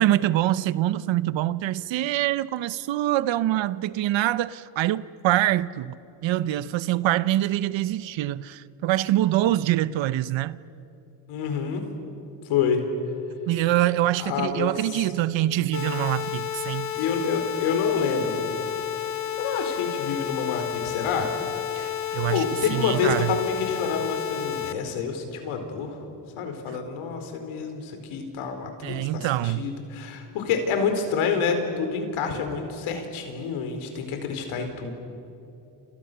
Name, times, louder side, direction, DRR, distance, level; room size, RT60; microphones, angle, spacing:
voice 1, 0.0-10.6 13.5-16.9 21.8-23.4 28.8-29.7, right 14 dB, 65° right, 0.9 m, -25 dB
voice 2, 11.3-11.8 12.5-12.8 14.2-15.0 16.9-18.4 19.4-21.3 22.0-26.0 26.4-34.9, left 6 dB, 80° left, 4.7 m, -28 dB
sound 1, 15.7-24.7, left 10 dB, 35° left, 1.3 m, -31 dB
29.5 x 29.0 x 6.9 m
cardioid pair, 100°, 48 cm